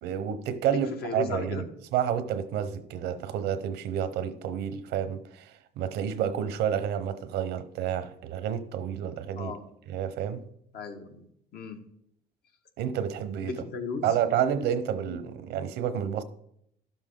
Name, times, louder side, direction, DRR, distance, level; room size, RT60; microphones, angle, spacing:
voice 1, 0.0-1.7 1.9-9.5 9.9-10.4 12.8-13.6 14.0-16.2, right 9 dB, 85° right, 0.9 m, -30 dB
voice 2, 0.6-1.7 9.4-9.6 10.7-11.3 11.5-11.8 13.4-14.0 15.0-15.2, left 4 dB, 70° left, 1.5 m, -35 dB
12.0 x 7.2 x 3.8 m
cardioid pair, 110°, 17 cm